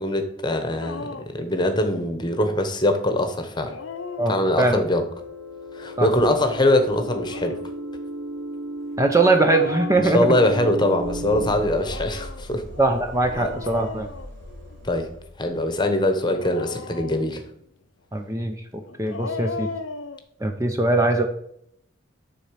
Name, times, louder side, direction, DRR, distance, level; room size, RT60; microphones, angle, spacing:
voice 1, 0.0-3.7 4.3-5.0 5.7-7.6 10.0-12.6 13.3-13.5 14.8-15.1 15.4-17.4, left 1 dB, 20° left, 7 dB, 1.0 m, -22 dB
Dog, 0.8-1.4 3.5-4.9 7.0-7.8 9.3-10.8 11.7-14.9 16.1-17.5 18.9-20.2, left 4 dB, 70° left, 0.7 m, -37 dB
sound 1, 3.7-11.5, right 1 dB, 85° right, 1.2 m, -35 dB
voice 2, 4.2-4.8 6.0-6.1 9.0-10.3 12.8-14.1 18.1-19.7 20.4-21.3, right 2 dB, 15° right, 5 dB, 0.6 m, -21 dB
sound 2, 11.0-16.2, equal, 60° right, 3.2 m, -40 dB
10.0 x 4.3 x 7.4 m, 0.73 s
head